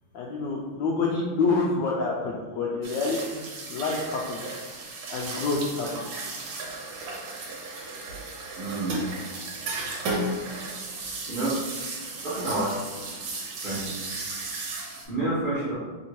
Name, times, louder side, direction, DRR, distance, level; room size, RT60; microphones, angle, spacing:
voice 1, 0.1-3.4 3.7-4.4 5.1-6.0 10.9-11.0, left 3 dB, 80° left, -3 dB, 1.0 m, -27 dB
sound 1, 2.8-15.1, right 2 dB, 70° right, 1.4 m, -35 dB
voice 2, 8.5-9.0 11.3-11.6 12.2-12.7 13.6-13.9 14.8-15.7, right 2 dB, 45° right, -10 dB, 0.6 m, -29 dB
3.4 x 2.7 x 4.5 m, 1.4 s
omnidirectional pair, 2.4 m